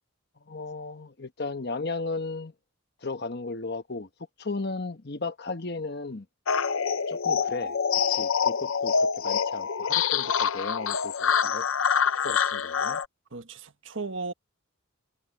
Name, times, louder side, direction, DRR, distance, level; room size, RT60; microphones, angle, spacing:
voice 1, 0.5-2.5 3.0-4.1 4.4-6.2 7.1-7.8 8.1-11.6 12.2-13.0, left 3 dB, 55° left, 1.2 m, -35 dB
sound 1, 6.5-13.1, left 6 dB, 85° left, 0.7 m, -26 dB
voice 2, 13.3-14.3, right 3 dB, 70° right, 1.4 m, -35 dB
head